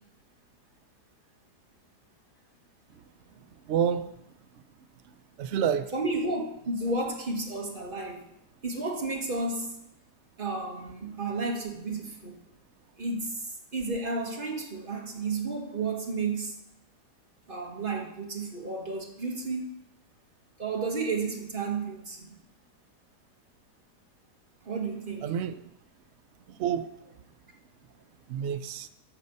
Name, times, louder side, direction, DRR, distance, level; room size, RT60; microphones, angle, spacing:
voice 1, 3.7-4.1 5.4-5.9 25.2-25.6 26.5-26.9 28.3-28.9, right 8 dB, 85° right, 0.6 m, -28 dB
voice 2, 5.9-8.3 8.6-9.8 10.4-12.3 13.0-13.4 13.7-16.5 17.5-19.7 20.6-22.4 24.7-25.3, right 3 dB, 30° right, 1.9 m, -32 dB
14.0 x 6.6 x 5.4 m
omnidirectional pair, 1.8 m